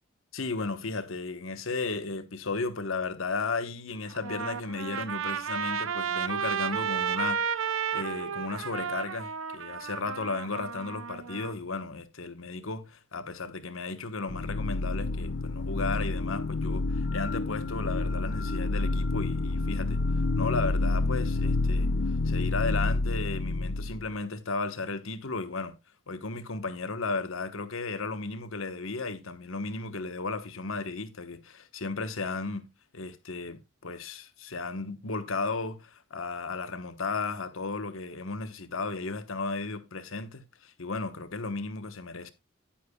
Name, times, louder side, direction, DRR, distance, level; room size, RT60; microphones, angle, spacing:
voice 1, 0.3-20.0 20.4-21.9 22.2-25.7 26.1-32.7 32.9-42.3, left 3 dB, 80° left, 1.2 m, -34 dB
Trumpet, 4.1-11.5, right 7 dB, 80° right, 0.7 m, -32 dB
sound 1, 14.3-24.1, left 3 dB, 55° left, 0.4 m, -29 dB
10.0 x 10.0 x 2.3 m
head